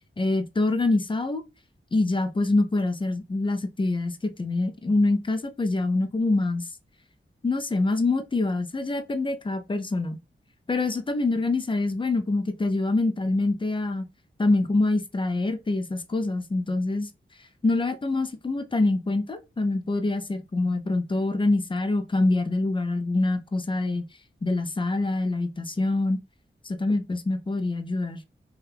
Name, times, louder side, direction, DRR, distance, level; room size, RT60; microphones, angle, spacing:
voice 1, 0.2-1.4 1.9-6.7 7.4-10.2 10.7-14.0 14.4-17.1 17.6-24.0 24.4-26.2 26.6-28.2, left 2 dB, 25° left, 0.5 m, -25 dB
2.7 x 2.3 x 3.3 m
wide cardioid pair, 75°, 21 cm